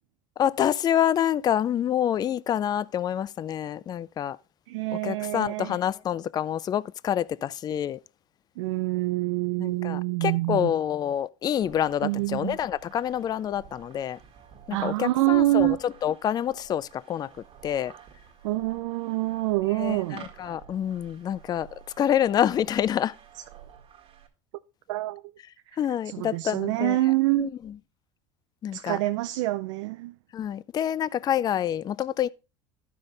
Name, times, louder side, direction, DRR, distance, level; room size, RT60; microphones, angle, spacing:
voice 1, 0.4-4.4 5.0-8.0 9.6-14.2 14.7-15.8 16.0-17.3 17.6-17.9 19.8-21.7 22.0-23.2 25.8-27.0 27.4-27.5 28.6-29.0 30.3-32.3, left 10 dB, 25° left, 0.3 m, -27 dB
voice 2, 4.7-5.8 8.6-10.7 12.0-12.6 14.7-15.8 18.4-20.3 23.3-23.4 24.9-25.2 25.7-25.8 26.0-27.5 28.7-30.2, right 19 dB, 80° right, 0.5 m, -26 dB
sound 1, 11.6-24.3, right 8 dB, 35° right, 1.8 m, -51 dB
12.0 x 5.5 x 3.9 m
supercardioid pair, 110°, 16 cm